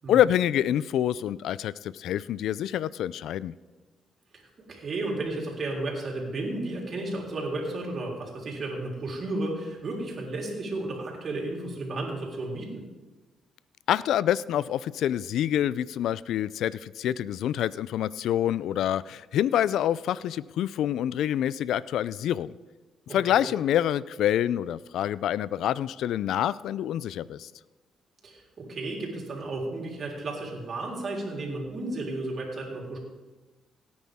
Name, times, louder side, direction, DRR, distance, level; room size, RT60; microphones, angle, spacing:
voice 1, 0.1-3.5 13.9-22.5 23.1-27.5, left 11 dB, 80° left, 19 dB, 0.4 m, -26 dB
voice 2, 4.3-12.8 23.1-23.5 28.2-33.0, right 2 dB, 50° right, -1 dB, 3.8 m, -33 dB
17.5 x 9.5 x 3.6 m, 1.2 s
cardioid pair, 90°, 0 cm